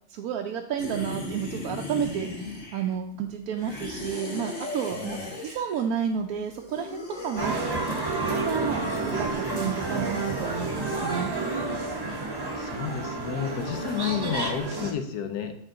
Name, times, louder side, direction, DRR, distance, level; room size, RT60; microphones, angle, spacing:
voice 1, 0.1-7.5 8.3-11.3 13.8-13.9, right 8 dB, 75° right, 3 dB, 1.0 m, -31 dB
sound 1, 0.8-3.0 3.5-5.8 6.4-11.2, left 2 dB, 45° left, 1.7 m, -38 dB
voice 2, 4.9-5.3 12.0-12.2 12.6-15.5, left 8 dB, 75° left, 7 dB, 1.3 m, -31 dB
sound 2, 7.4-14.9, right 3 dB, 20° right, 0.7 m, -30 dB
9.1 x 4.4 x 3.9 m, 0.68 s
omnidirectional pair, 1.7 m